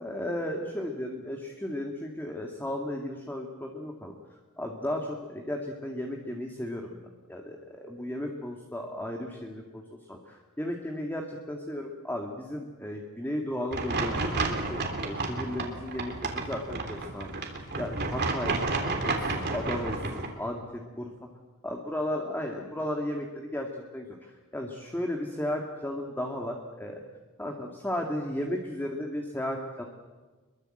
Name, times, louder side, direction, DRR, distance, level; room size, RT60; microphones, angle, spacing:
voice 1, 0.0-4.1 4.6-7.0 7.3-17.3 17.8-18.6 19.0-21.1 21.6-23.7 23.9-27.0 27.4-29.8, left 1 dB, 10° left, 1 dB, 2.1 m, -35 dB
sound 1, 13.7-20.3, right 3 dB, 50° right, 3.4 m, -31 dB
25.5 x 23.0 x 7.8 m, 1.3 s
head